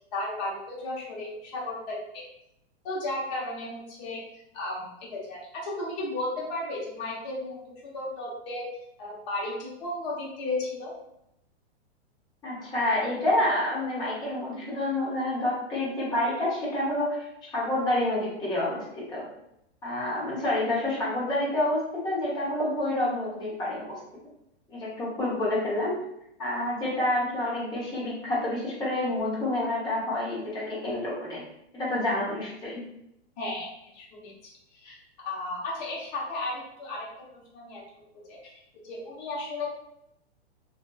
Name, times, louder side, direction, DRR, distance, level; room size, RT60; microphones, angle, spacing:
voice 1, 0.0-2.2 2.8-4.2 4.5-8.7 9.0-10.9 33.4-33.7 33.9-34.3 34.7-35.0 35.2-37.8 38.3-38.5 38.8-39.7, left 2 dB, 40° left, -4 dB, 0.9 m, -34 dB
voice 2, 12.4-19.3 19.8-24.0 24.7-26.0 26.4-31.4 31.7-32.8, left 1 dB, 15° left, -7 dB, 0.8 m, -28 dB
2.6 x 2.4 x 2.2 m, 0.80 s
hypercardioid pair, 145°, 34 cm